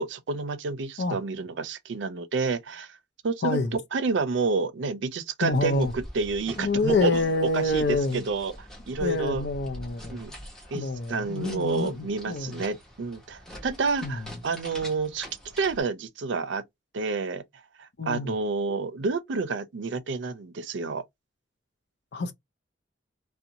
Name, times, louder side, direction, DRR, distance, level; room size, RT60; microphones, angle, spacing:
voice 1, 0.0-2.9 3.2-7.2 7.5-8.5 8.9-9.4 10.1-10.3 10.7-15.3 15.5-16.6 16.9-17.4 17.8-21.0, right 4 dB, 80° right, 0.5 m, -29 dB
voice 2, 3.4-3.8 5.4-5.9 6.6-8.2 9.0-10.2 10.7-12.6 14.0-14.3 18.0-18.3 22.1-22.3, left 2 dB, 65° left, 0.5 m, -27 dB
sound 1, 5.5-15.8, equal, 5° left, 0.9 m, -44 dB
2.5 x 2.1 x 2.7 m
head